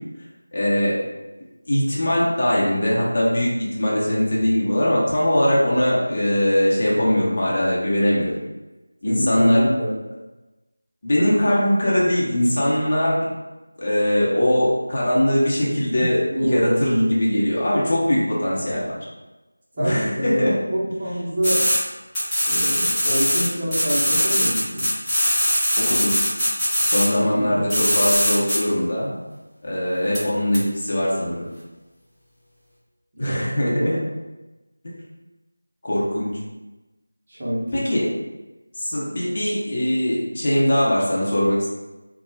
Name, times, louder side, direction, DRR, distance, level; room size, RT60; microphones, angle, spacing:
voice 1, 0.5-1.0 1.7-8.3 9.0-9.7 11.0-13.2 13.8-18.9 19.8-20.6 25.8-26.1 26.8-29.2 29.6-31.5 33.2-34.0 35.8-36.4 37.7-38.1 38.8-41.7, left 1 dB, 40° left, -6 dB, 0.8 m, -21 dB
voice 2, 9.0-9.9 16.3-17.5 19.8-21.7 22.5-24.9 27.2-27.6 30.0-30.3 33.2-33.9 37.3-37.9 39.2-39.3, equal, 35° right, -8 dB, 1.0 m, -26 dB
sound 1, 21.4-21.8 22.1-23.5 23.7-27.0 27.7-28.6 30.1-30.2 30.5-30.6, equal, ahead, 0.9 m, -21 dB
4.2 x 2.3 x 2.3 m, 1.1 s
figure-of-eight pair, 170°, 0 cm